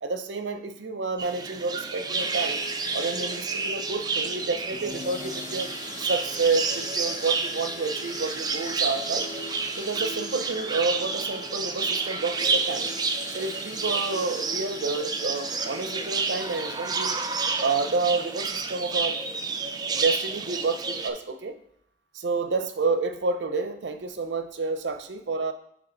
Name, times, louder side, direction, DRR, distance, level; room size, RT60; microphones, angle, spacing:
voice 1, 0.0-2.6 2.9-5.7 6.0-9.3 9.8-12.9 13.3-17.2 17.6-19.2 19.9-21.5 22.1-25.5, right 3 dB, 85° right, 8 dB, 0.6 m, -29 dB
sound 1, 1.2-21.1, right 4 dB, 25° right, 0.4 m, -30 dB
sound 2, 2.1-17.7, left 4 dB, 45° left, 0.5 m, -42 dB
8.6 x 3.2 x 3.9 m, 0.72 s
head